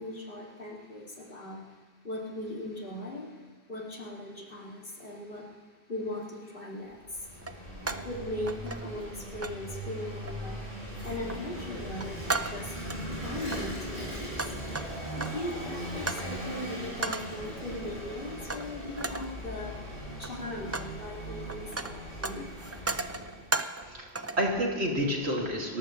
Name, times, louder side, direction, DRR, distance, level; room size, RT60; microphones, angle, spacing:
voice 1, 0.0-1.6 2.0-3.3 3.7-5.4 5.9-7.0 7.9-10.6 11.0-12.8 13.2-14.1 15.2-19.7 20.2-22.5, left 1 dB, 55° left, -2 dB, 2.7 m, -38 dB
sound 1, 6.1-6.3 7.4-8.2 8.5-9.1 9.4-9.6 10.2-10.6 10.9-11.5 11.8-13.0 13.4-15.5 16.1-16.3 17.0-17.4 18.5-18.7 19.0-19.4 20.1-21.0 21.2-23.9 24.2-24.5, right 3 dB, 25° right, 0.3 m, -36 dB
Vehicle / Engine, 6.9-23.5, equal, 35° left, 7.2 m, -39 dB
voice 2, 23.8-25.8, equal, 80° right, -1 dB, 2.9 m, -29 dB
29.5 x 14.5 x 3.2 m, 1.4 s
omnidirectional pair, 1.1 m